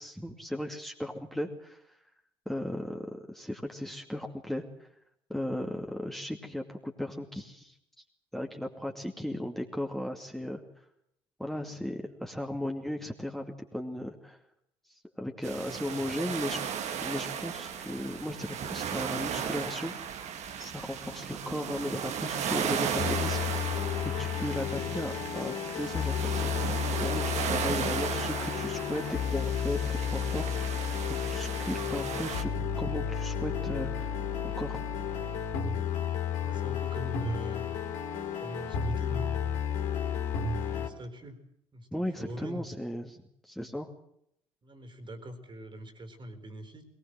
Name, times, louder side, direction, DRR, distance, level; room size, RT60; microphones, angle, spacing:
voice 1, 0.0-1.8 2.5-4.9 5.3-7.7 8.3-10.6 11.4-14.4 14.9-16.6 17.0-19.9 20.6-23.7 24.2-26.5 26.9-30.7 31.2-32.5 32.8-34.1 34.4-34.9 41.9-43.2 43.4-43.9, left 1 dB, ahead, 2 dB, 2.5 m, -36 dB
sound 1, 15.4-32.4, right 8 dB, 55° right, 2.1 m, -35 dB
sound 2, 23.0-40.9, left 8 dB, 70° left, 3.5 m, -32 dB
voice 2, 36.4-37.6 38.4-39.6 40.3-41.4 41.7-42.6 44.6-46.9, equal, 35° right, 9 dB, 4.1 m, -42 dB
21.0 x 19.5 x 7.7 m, 0.74 s
hypercardioid pair, 50°, 13 cm